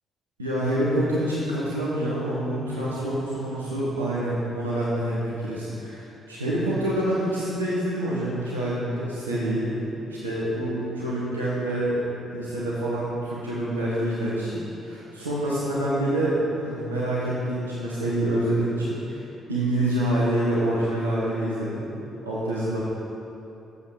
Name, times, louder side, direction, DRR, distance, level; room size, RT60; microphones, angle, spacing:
voice 1, 0.4-9.8 10.1-12.0 12.3-19.2 19.5-21.8 22.2-22.8, right 1 dB, 85° right, -8 dB, 1.1 m, -26 dB
8.5 x 7.4 x 5.0 m, 2.9 s
figure-of-eight pair, 45°, 0 cm